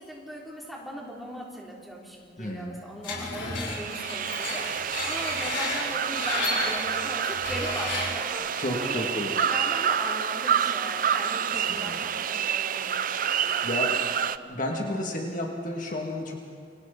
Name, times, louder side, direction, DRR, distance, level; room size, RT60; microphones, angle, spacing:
voice 1, 0.0-12.9 13.4-14.0, equal, ahead, -3 dB, 3.4 m, -39 dB
voice 2, 2.4-2.9 8.6-9.3 11.5-12.0 13.6-13.9 14.5-16.5, left 1 dB, 45° left, 0 dB, 2.5 m, -32 dB
Screech, 3.0-8.3, left 3 dB, 85° left, 5.9 m, -33 dB
sound 1, 3.7-14.4, right 8 dB, 45° right, 0.5 m, -28 dB
29.5 x 25.0 x 4.3 m, 2.1 s
head